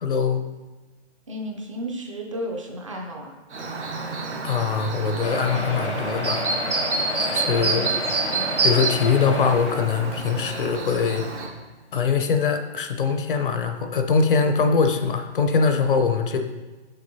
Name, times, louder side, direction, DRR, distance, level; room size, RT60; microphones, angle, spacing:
voice 1, 0.0-0.5 4.4-6.5 7.2-7.9 8.6-11.3 11.9-16.4, left 5 dB, 50° left, 7 dB, 0.6 m, -22 dB
voice 2, 1.3-3.3 7.6-7.9 8.3-8.5, equal, 30° right, 1 dB, 0.4 m, -33 dB
Chirp tweet, 3.5-11.5, right 3 dB, 85° right, 1.1 m, -28 dB
sound 1, 5.2-10.7 11.3-11.4 11.7-11.8 12.1-12.2, left 1 dB, 85° left, 1.2 m, -32 dB
6.5 x 6.3 x 2.7 m, 1.2 s
hypercardioid pair, 145°, 34 cm